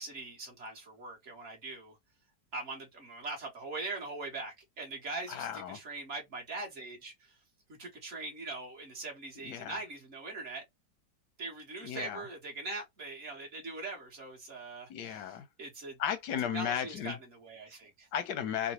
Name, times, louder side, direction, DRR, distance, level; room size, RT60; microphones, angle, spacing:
voice 1, 0.0-2.0 2.5-7.4 7.8-10.6 11.4-16.0 16.5-18.1, right 3 dB, 45° right, 1.3 m, -42 dB
voice 2, 5.3-5.8 9.4-9.8 11.8-12.2 14.9-15.5 16.0-17.2 18.1-18.7, left 9 dB, 90° left, 1.3 m, -35 dB
3.8 x 2.1 x 2.9 m
omnidirectional pair, 1.8 m